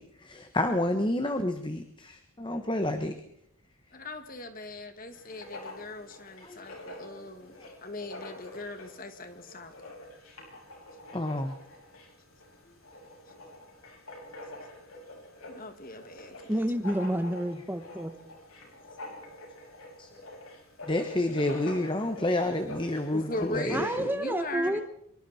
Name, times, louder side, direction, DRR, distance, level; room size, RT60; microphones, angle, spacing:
voice 1, 0.0-3.1 6.4-6.7 7.6-7.7 11.1-11.6 20.0-20.1 20.9-24.1, left 1 dB, 20° left, 7 dB, 1.3 m, -29 dB
voice 2, 3.9-7.5 7.8-9.7 12.6-12.7 15.5-16.6 23.1-24.8, left 1 dB, 40° left, 7 dB, 2.2 m, -39 dB
Writing, 5.1-23.9, left 1 dB, 75° left, 7.3 m, -46 dB
voice 3, 16.5-18.2 23.7-24.8, right 1 dB, 10° right, 8 dB, 1.1 m, -29 dB
25.0 x 23.5 x 4.4 m, 0.74 s
head